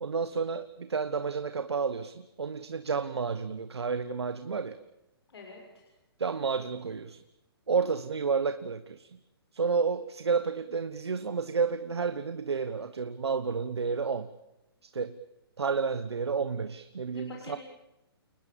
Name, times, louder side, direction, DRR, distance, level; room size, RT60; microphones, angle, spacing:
voice 1, 0.0-4.8 6.2-7.2 7.7-9.2 9.5-14.3 14.8-15.2 15.6-17.6, right 5 dB, 85° right, 11 dB, 1.4 m, -31 dB
voice 2, 5.3-5.8 17.1-17.6, left 4 dB, 75° left, 0 dB, 6.8 m, -47 dB
29.5 x 20.5 x 7.2 m, 0.93 s
hypercardioid pair, 135°, 13 cm